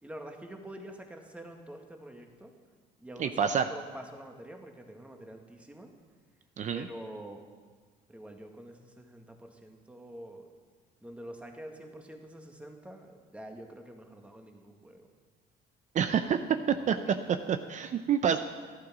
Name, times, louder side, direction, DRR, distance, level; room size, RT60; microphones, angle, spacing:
voice 1, 0.0-2.5 3.0-5.9 6.7-7.4 8.1-10.5 11.0-15.1 16.9-17.4, right 1 dB, 5° right, 3 dB, 1.8 m, -46 dB
voice 2, 3.2-3.7 6.6-6.9 15.9-16.4 16.7-16.9 17.5-18.4, right 8 dB, 45° right, 9 dB, 0.6 m, -27 dB
13.5 x 11.5 x 6.2 m, 1.5 s
cardioid pair, 110°, 17 cm